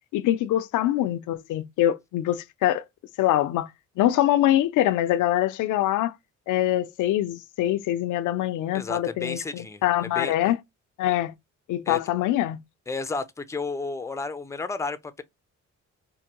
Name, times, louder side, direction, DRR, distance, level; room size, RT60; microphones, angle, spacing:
voice 1, 0.1-2.8 3.2-3.7 4.0-6.1 6.5-10.6 11.0-11.3 11.7-12.6, left 13 dB, 85° left, 0.5 m, -24 dB
voice 2, 8.7-10.3 11.9-12.0 12.9-15.2, left 3 dB, 10° left, 0.5 m, -32 dB
4.5 x 2.2 x 2.8 m
cardioid pair, 90°, 30 cm